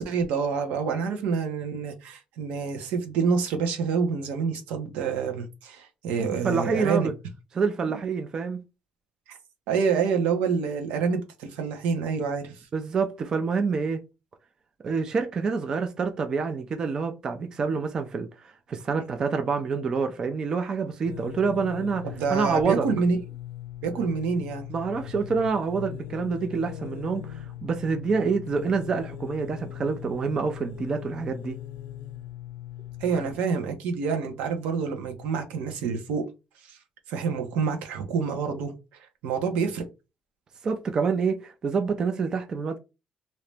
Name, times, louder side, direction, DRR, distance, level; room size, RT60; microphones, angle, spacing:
voice 1, 0.0-7.1 9.7-12.5 22.0-23.2 23.8-24.7 33.0-36.2 36.7-36.8 37.1-38.7 39.2-39.8, right 5 dB, 90° right, 1.0 m, -27 dB
voice 2, 6.2-7.1 7.5-8.6 12.7-14.0 14.8-22.9 24.7-31.6 40.6-42.8, right 5 dB, 30° right, 0.4 m, -27 dB
sound 1, 21.0-33.3, left 11 dB, 85° left, 0.5 m, -39 dB
3.1 x 2.8 x 3.3 m
cardioid pair, 170°, 3 cm